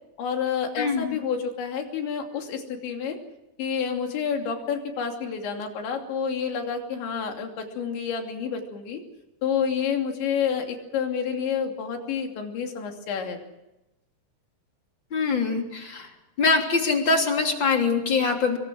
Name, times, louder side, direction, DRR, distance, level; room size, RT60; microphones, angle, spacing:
voice 1, 0.2-3.2 3.6-9.0 9.4-13.4, left 7 dB, 70° left, 3 dB, 5.1 m, -29 dB
voice 2, 0.8-1.2 15.1-16.1 16.4-18.6, left 4 dB, 30° left, 3 dB, 3.1 m, -23 dB
25.5 x 23.5 x 6.4 m, 0.93 s
omnidirectional pair, 5.5 m